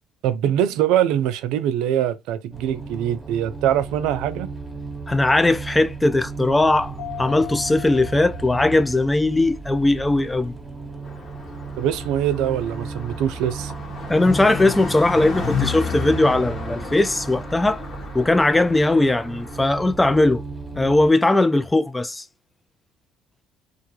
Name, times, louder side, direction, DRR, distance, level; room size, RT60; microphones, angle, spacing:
voice 1, 0.2-4.5 11.8-13.7, right 10 dB, 75° right, 0.4 m, -23 dB
sound 1, 2.5-21.1, right 4 dB, 10° right, 1.0 m, -35 dB
voice 2, 5.1-10.5 14.1-17.8 18.1-20.4 20.8-22.2, left 2 dB, 15° left, 0.4 m, -19 dB
Mallet percussion, 7.0-9.5, left 14 dB, 80° left, 0.7 m, -38 dB
Car passing by, 11.0-19.6, left 5 dB, 45° left, 1.1 m, -32 dB
2.5 x 2.3 x 2.8 m
supercardioid pair, 75°, 0 cm